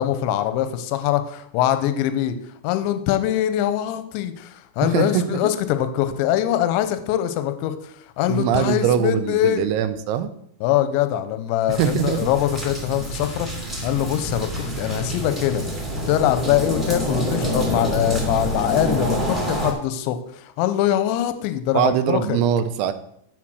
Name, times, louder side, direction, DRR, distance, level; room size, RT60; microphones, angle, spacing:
voice 1, 0.0-2.4 2.6-9.7 10.6-13.5 13.8-15.6 16.1-22.4, left 11 dB, 85° left, 10 dB, 2.8 m, -23 dB
voice 2, 4.8-5.5 8.3-10.3 11.7-12.3 21.7-22.9, right 9 dB, 85° right, 10 dB, 3.0 m, -22 dB
sound 1, 11.7-19.7, equal, ahead, 1.4 m, -27 dB
12.0 x 4.2 x 6.3 m, 0.72 s
omnidirectional pair, 5.5 m